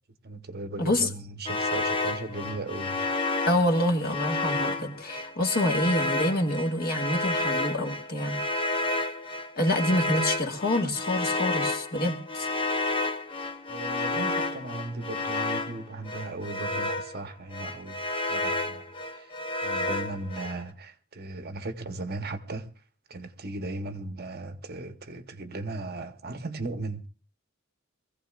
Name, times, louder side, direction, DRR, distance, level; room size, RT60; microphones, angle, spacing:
voice 1, 0.2-3.0 13.7-22.8 23.1-27.1, right 2 dB, 45° right, 1.0 m, -37 dB
voice 2, 0.8-1.1 3.5-8.4 9.6-12.5, left 1 dB, 45° left, 1.6 m, -27 dB
sound 1, 1.5-17.2 17.5-20.6, left 2 dB, 25° left, 0.8 m, -31 dB
23.5 x 15.5 x 2.4 m
head